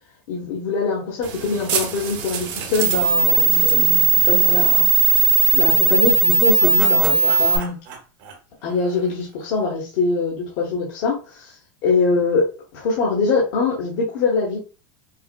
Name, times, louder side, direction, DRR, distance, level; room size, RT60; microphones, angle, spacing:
voice 1, 0.3-4.8 5.5-7.7 8.6-11.5 11.8-12.5 12.7-14.6, left 4 dB, 65° left, -4 dB, 1.2 m, -23 dB
sound 1, 1.2-7.6, right 5 dB, 50° right, 0.8 m, -18 dB
sound 2, 5.3-9.4, right 5 dB, 65° right, 1.4 m, -37 dB
5.4 x 2.1 x 2.2 m, 0.33 s
supercardioid pair, 140°, 11 cm